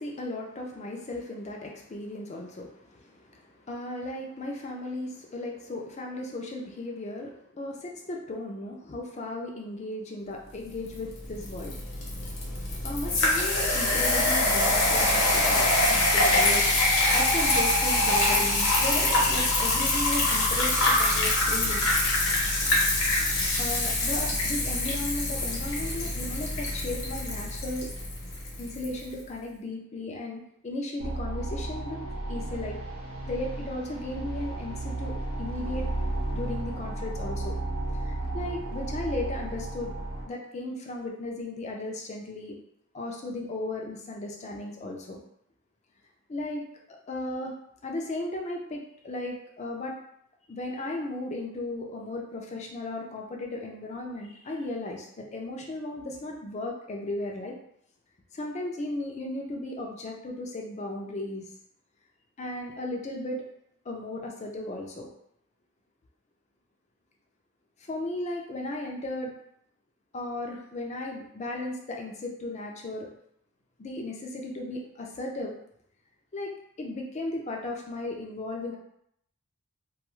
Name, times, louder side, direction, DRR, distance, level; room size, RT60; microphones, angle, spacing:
voice 1, 0.0-11.7 12.8-16.7 17.1-21.9 23.6-27.9 28.6-32.0 32.3-32.8 33.2-35.9 36.2-37.6 37.9-39.9 40.3-42.6 42.9-45.2 46.3-47.5 47.8-50.0 50.5-57.6 58.3-61.5 62.4-63.4 63.9-65.1 67.9-69.3 70.1-73.1 73.8-75.5 76.3-76.5 76.8-78.8, left 2 dB, 30° left, 0 dB, 0.4 m, -35 dB
sound 1, 10.9-28.9, left 2 dB, 60° left, 0.8 m, -25 dB
sound 2, 31.0-40.2, right 2 dB, 70° right, 0.7 m, -33 dB
2.3 x 2.3 x 3.0 m, 0.73 s
head